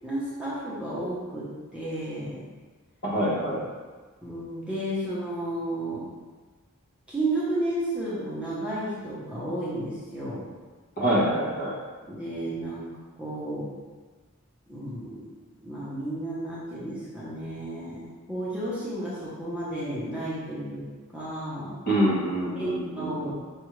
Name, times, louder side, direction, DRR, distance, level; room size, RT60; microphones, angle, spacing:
voice 1, 0.0-2.4 4.2-6.0 7.1-10.4 12.1-12.9 13.2-13.7 14.7-15.2 15.6-20.9 21.1-21.8 22.5-23.3, right 1 dB, 5° right, -10 dB, 0.8 m, -32 dB
voice 2, 3.0-3.7 11.0-11.7 21.9-23.3, right 1 dB, 40° left, -7 dB, 1.2 m, -25 dB
6.0 x 2.4 x 3.1 m, 1.4 s
head